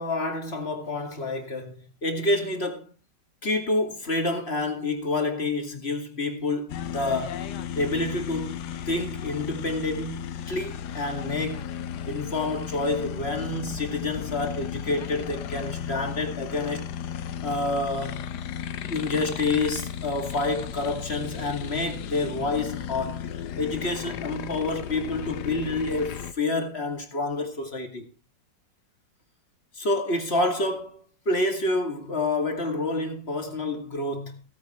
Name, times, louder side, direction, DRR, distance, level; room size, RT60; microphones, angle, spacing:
voice 1, 0.0-2.9 3.4-7.5 7.8-8.6 8.9-11.7 12.1-16.9 17.4-18.3 18.9-28.1 29.7-34.4, left 2 dB, 35° left, 2.5 m, -28 dB
sound 1, 6.7-26.3, left 9 dB, 70° left, 1.3 m, -35 dB
16.5 x 9.2 x 4.4 m
omnidirectional pair, 1.9 m